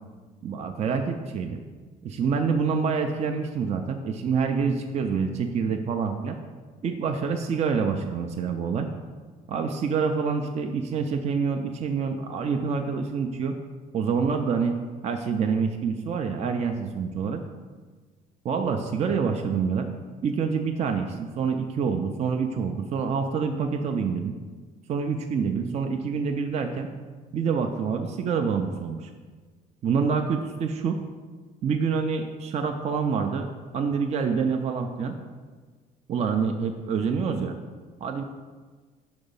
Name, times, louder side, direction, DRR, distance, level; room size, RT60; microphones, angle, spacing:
voice 1, 0.4-1.6 2.0-6.4 6.8-8.9 9.5-13.5 13.9-14.8 15.0-17.4 18.4-19.9 20.2-24.4 24.9-26.9 27.3-29.1 29.8-31.0 31.6-33.5 33.7-35.2 36.1-37.6 38.0-38.2, right 5 dB, 40° right, 5 dB, 0.4 m, -26 dB
5.2 x 3.9 x 5.3 m, 1.4 s
cardioid pair, 110°, 17 cm